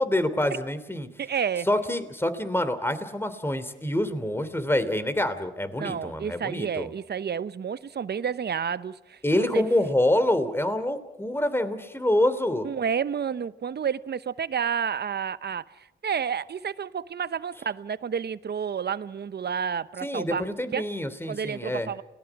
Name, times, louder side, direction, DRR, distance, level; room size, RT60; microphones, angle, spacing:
voice 1, 0.0-1.1 1.7-6.9 9.2-12.7 20.0-21.9, left 1 dB, 10° left, 3.0 m, -26 dB
voice 2, 1.2-1.7 5.8-9.6 12.6-20.9 21.3-22.0, right 7 dB, 55° right, 0.9 m, -30 dB
29.5 x 19.0 x 6.0 m
cardioid pair, 50°, 20 cm